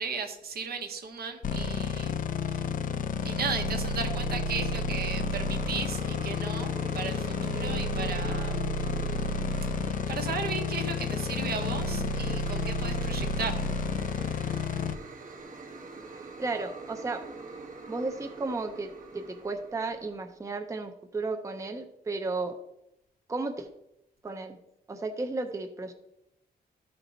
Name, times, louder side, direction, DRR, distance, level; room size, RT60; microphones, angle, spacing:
voice 1, 0.0-2.7 3.2-8.7 9.8-13.6, right 5 dB, 70° right, 5 dB, 1.1 m, -36 dB
sound 1, 1.4-14.9, left 4 dB, 55° left, 0.5 m, -31 dB
sound 2, 4.0-20.3, right 4 dB, 55° right, 1.1 m, -44 dB
voice 2, 16.4-17.3 17.9-22.6 23.3-23.7 24.2-24.6 24.9-25.9, right 3 dB, 20° right, 6 dB, 0.6 m, -34 dB
13.5 x 4.6 x 3.9 m, 0.84 s
wide cardioid pair, 170°, 16 cm